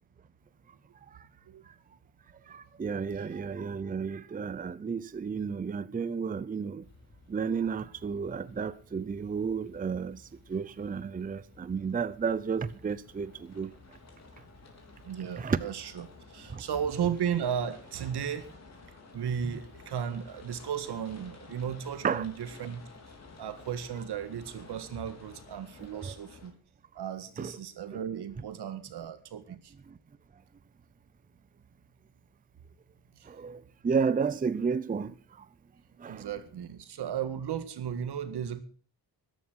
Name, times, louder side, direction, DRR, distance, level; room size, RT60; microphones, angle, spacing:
voice 1, 2.5-6.8 7.3-13.7 15.4-15.6 16.5-16.6 19.4-19.5 22.0-22.2 26.0-26.2 27.4-27.5 27.9-28.0 29.5-29.6 29.9-30.0 33.2-35.5 36.0-36.3, right 6 dB, 20° right, 0.6 m, -32 dB
sound 1, 6.8-26.5, left 3 dB, 40° left, 3.8 m, -53 dB
voice 2, 15.0-18.5 19.1-22.8 23.4-26.5 27.0-29.7 36.1-38.6, right 8 dB, 90° right, 1.7 m, -35 dB
13.5 x 11.5 x 6.3 m
wide cardioid pair, 135°, 38 cm